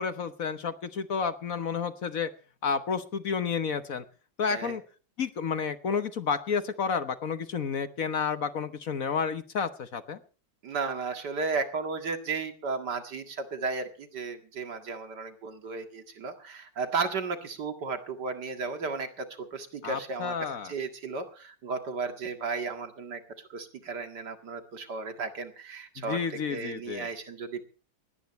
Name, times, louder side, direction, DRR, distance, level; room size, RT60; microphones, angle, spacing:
voice 1, 0.0-2.3 2.6-4.0 4.4-4.8 5.2-10.2 19.8-20.7 26.0-27.1, left 6 dB, 55° left, 11 dB, 1.4 m, -31 dB
voice 2, 10.6-23.2 23.5-27.6, right 4 dB, 65° right, 6 dB, 2.5 m, -34 dB
20.0 x 18.0 x 3.2 m, 0.37 s
omnidirectional pair, 1.9 m